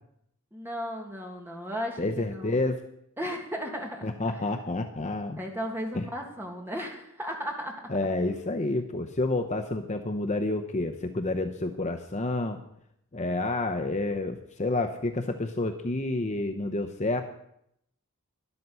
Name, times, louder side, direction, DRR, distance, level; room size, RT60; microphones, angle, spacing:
voice 1, 0.5-2.5 3.2-4.4 5.4-7.9, equal, 10° right, 1 dB, 1.9 m, -35 dB
voice 2, 2.0-2.8 4.0-5.4 5.9-6.1 7.9-12.6 13.1-17.2, left 2 dB, 30° left, 6 dB, 0.7 m, -29 dB
12.5 x 11.0 x 5.5 m, 0.74 s
head